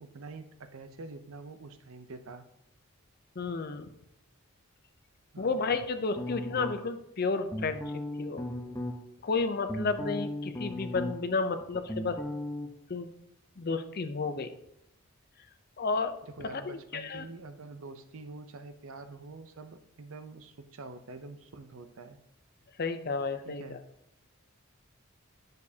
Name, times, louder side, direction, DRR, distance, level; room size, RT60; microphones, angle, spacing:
voice 1, 0.0-2.4 5.3-5.6 16.3-22.2 23.4-23.8, right 3 dB, 65° right, 10 dB, 0.6 m, -46 dB
voice 2, 3.4-3.9 5.4-7.8 8.2-8.4 9.2-12.2 12.9-13.1 13.6-14.5 15.8-16.1 16.5-17.2 22.8-23.8, left 4 dB, 45° left, 9 dB, 0.5 m, -32 dB
sound 1, 6.2-7.0 7.5-8.9 9.4-11.4 11.6-12.7, left 1 dB, 15° left, 0.8 m, -36 dB
10.5 x 6.6 x 2.8 m, 0.78 s
head